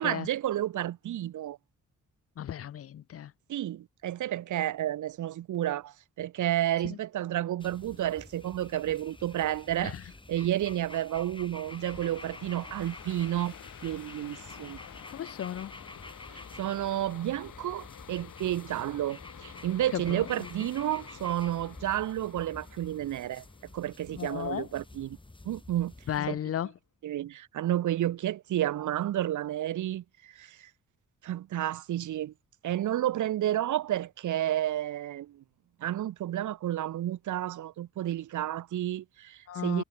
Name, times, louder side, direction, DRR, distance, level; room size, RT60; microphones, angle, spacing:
voice 1, 0.0-1.6 3.5-10.0 10.3-13.5 13.8-14.8 16.3-23.4 23.7-25.2 25.4-25.9 26.3-26.4 27.0-30.7 31.2-32.3 32.6-35.4 35.8-39.8, right 12 dB, 75° right, 0.8 m, -31 dB
voice 2, 2.4-3.3 6.9-7.0 9.8-10.0 15.1-15.7 19.9-20.5 24.1-24.7 26.1-26.7 39.5-39.8, left 10 dB, 50° left, 0.5 m, -35 dB
sound 1, 7.6-26.2, left 2 dB, 15° left, 7.7 m, -49 dB
sound 2, 11.6-25.0, left 11 dB, 90° left, 8.0 m, -50 dB
cardioid pair, 95°, 30 cm